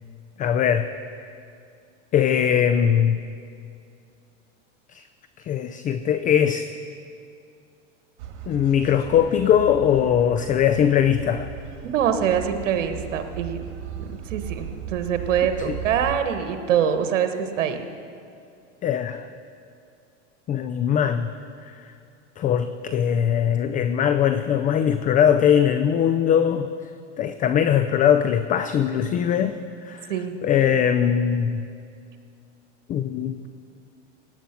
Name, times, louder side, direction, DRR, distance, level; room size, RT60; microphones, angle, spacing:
voice 1, 0.4-0.9 1.3-1.4 2.1-3.2 4.9-5.0 5.4-6.7 8.5-11.5 15.7-15.8 18.8-19.3 20.5-21.3 21.6-21.9 22.4-26.7 27.2-30.1 30.4-31.6 32.9-33.4, left 9 dB, 25° left, 10 dB, 0.4 m, -21 dB
sound 1, 8.2-16.2, right 9 dB, 65° right, 1.8 m, -37 dB
voice 2, 11.8-13.6 14.1-17.8 30.1-30.4, right 8 dB, 80° right, 8 dB, 1.3 m, -24 dB
17.0 x 9.1 x 5.8 m, 2.5 s
hypercardioid pair, 110°, 37 cm